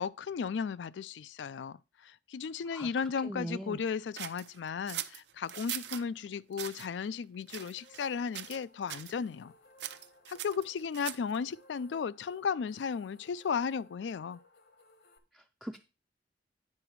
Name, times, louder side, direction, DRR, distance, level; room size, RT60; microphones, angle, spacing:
voice 1, 0.0-1.8 2.0-9.5 10.3-14.4, left 6 dB, 85° left, 0.4 m, -35 dB
voice 2, 3.2-3.8 15.3-15.8, right 1 dB, 5° right, 0.4 m, -40 dB
sound 1, 4.2-6.1 6.5-6.9 7.5-8.1 8.3-8.6 8.9-9.1 9.8-11.4, right 11 dB, 75° right, 0.6 m, -41 dB
sound 2, 7.7-15.2, left 2 dB, 65° left, 1.0 m, -62 dB
9.6 x 4.9 x 4.6 m
head